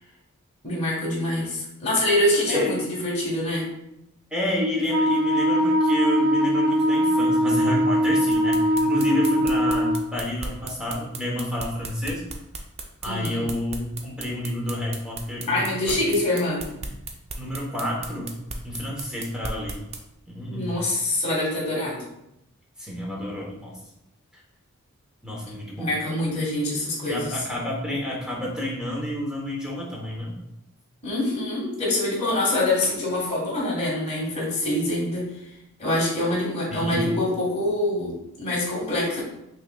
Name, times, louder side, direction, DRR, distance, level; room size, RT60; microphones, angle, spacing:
voice 1, 0.6-3.6 13.0-13.5 15.5-16.6 20.5-22.0 25.8-27.4 31.0-35.2 35.8-39.2, left 1 dB, 30° left, -4 dB, 1.4 m, -25 dB
voice 2, 2.5-2.8 4.3-12.2 13.0-16.1 17.3-18.3 18.6-19.8 20.3-20.7 22.8-23.8 24.3-24.4 25.2-25.9 27.1-30.4 36.7-37.1, left 1 dB, 5° right, -3 dB, 0.8 m, -29 dB
Wind instrument woodwind instrument, 4.9-10.1, equal, 80° right, 0.5 m, -21 dB
sound 1, 8.3-20.0, right 3 dB, 30° right, 0.3 m, -35 dB
5.6 x 3.2 x 2.2 m, 0.84 s
head